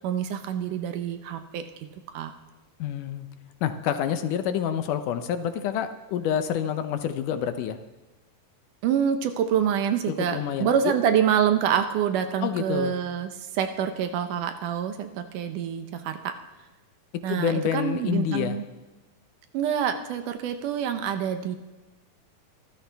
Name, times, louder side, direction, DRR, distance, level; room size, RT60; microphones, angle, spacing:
voice 1, 0.0-1.6 2.1-2.3 8.8-16.3 17.2-18.6 19.5-21.6, right 8 dB, 75° right, 8 dB, 2.3 m, -26 dB
voice 2, 2.8-3.3 3.6-7.8 10.2-11.0 12.4-12.9 17.3-18.6, left 9 dB, 75° left, 9 dB, 2.1 m, -28 dB
25.0 x 14.0 x 3.5 m, 1.1 s
omnidirectional pair, 4.0 m